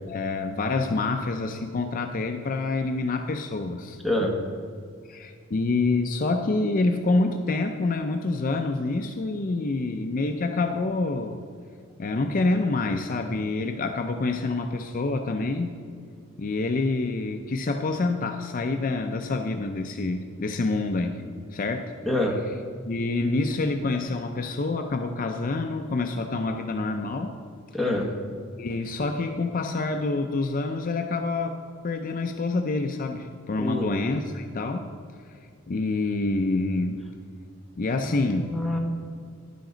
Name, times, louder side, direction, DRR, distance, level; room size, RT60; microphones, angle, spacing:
voice 1, 0.1-4.0 5.1-11.4 12.0-15.7 16.4-21.2 21.5-21.9 22.9-27.3 28.6-31.6 31.8-34.9 35.7-37.0 37.8-38.5, left 3 dB, 40° left, 5 dB, 0.4 m, -27 dB
voice 2, 4.0-4.3 22.0-22.4 27.7-28.1 33.6-33.9 38.0-38.8, left 1 dB, ahead, -1 dB, 1.1 m, -26 dB
10.5 x 9.2 x 3.9 m, 2.1 s
head